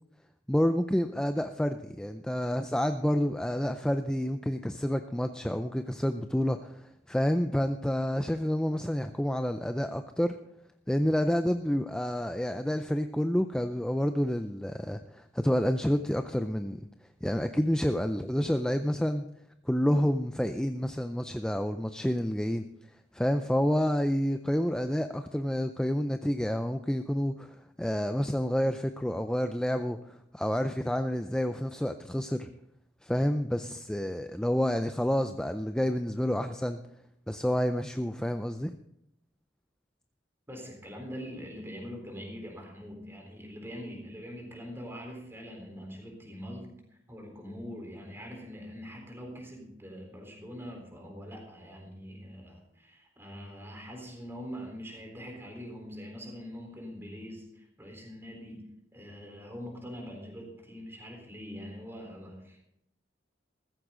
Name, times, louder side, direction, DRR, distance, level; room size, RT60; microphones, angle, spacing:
voice 1, 0.5-6.8 7.1-10.3 10.9-16.8 17.2-19.2 19.7-22.7 23.1-30.0 30.3-32.5 33.0-36.8 37.3-38.8, equal, 5° left, 8 dB, 0.4 m, -29 dB
voice 2, 40.5-46.7 47.1-62.6, equal, 15° right, 1 dB, 3.9 m, -43 dB
15.0 x 14.5 x 3.8 m, 0.77 s
head